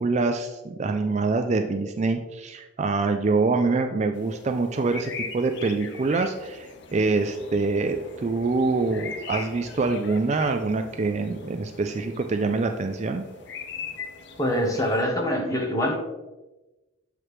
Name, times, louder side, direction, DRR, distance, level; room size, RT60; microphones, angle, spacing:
voice 1, 0.0-13.2, right 3 dB, 35° right, 6 dB, 0.3 m, -25 dB
sound 1, 4.1-15.0, left 5 dB, 55° left, 0.6 m, -41 dB
voice 2, 14.4-15.9, equal, 15° left, 1 dB, 0.9 m, -24 dB
7.3 x 4.9 x 3.2 m, 1.1 s
head